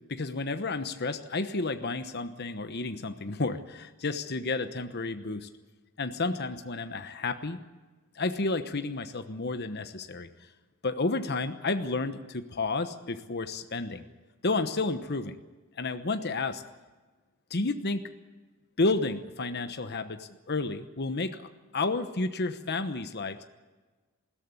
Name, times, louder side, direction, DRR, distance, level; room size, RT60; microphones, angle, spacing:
voice 1, 0.0-5.5 6.0-7.6 8.1-10.3 10.8-14.0 14.4-15.4 15.8-16.6 17.5-18.1 18.8-23.4, left 3 dB, 50° left, 9 dB, 1.1 m, -31 dB
20.5 x 16.5 x 9.8 m, 1.3 s
head